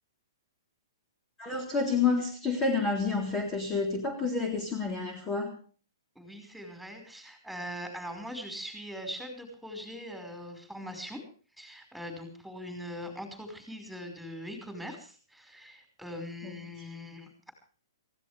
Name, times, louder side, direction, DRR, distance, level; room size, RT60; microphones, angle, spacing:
voice 1, 1.4-5.6 16.4-16.6, left 4 dB, 20° left, 1 dB, 3.6 m, -29 dB
voice 2, 6.2-11.2 11.6-17.3, equal, ahead, 4 dB, 5.2 m, -41 dB
22.5 x 16.5 x 3.5 m, 0.41 s
hypercardioid pair, 135°, 2 cm